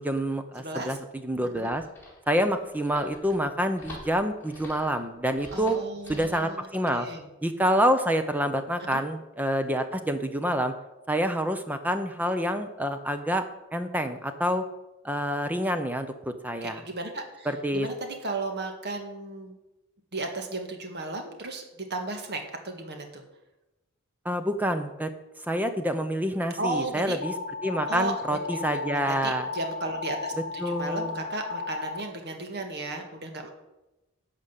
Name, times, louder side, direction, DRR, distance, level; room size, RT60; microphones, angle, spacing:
voice 1, 0.0-1.8 2.3-5.8 6.1-7.1 7.4-10.7 11.1-13.5 13.7-14.6 15.0-16.8 17.5-17.9 24.2-25.1 25.4-27.3 27.6-29.5 30.6-31.2, equal, 10° right, 8 dB, 0.6 m, -27 dB
voice 2, 0.6-1.0 1.5-1.7 5.5-6.7 6.9-7.3 8.9-9.0 16.6-19.6 20.1-21.6 21.9-23.2 26.6-27.2 27.9-33.5, right 2 dB, 50° right, 4 dB, 1.7 m, -35 dB
sound 1, 1.5-6.5, left 1 dB, 10° left, 3.5 m, -46 dB
sound 2, 27.2-32.0, left 4 dB, 50° left, 0.6 m, -35 dB
11.5 x 5.1 x 8.2 m, 0.98 s
head